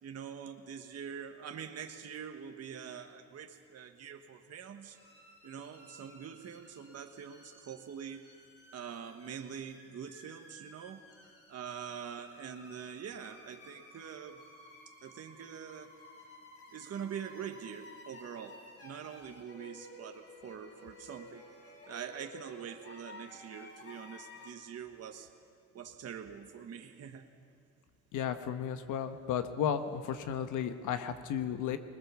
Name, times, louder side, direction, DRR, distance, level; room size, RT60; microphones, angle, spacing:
voice 1, 0.0-5.0 5.4-8.3 8.7-11.1 11.5-14.4 15.0-16.0 16.7-21.4 21.9-25.3 25.7-27.3, right 8 dB, 55° right, 5 dB, 1.3 m, -44 dB
sound 1, 4.9-24.5, left 1 dB, 50° left, 7.2 m, -54 dB
voice 2, 28.1-31.8, left 8 dB, 85° left, 9 dB, 1.2 m, -34 dB
21.0 x 20.5 x 7.0 m, 2.2 s
cardioid pair, 90°, 30 cm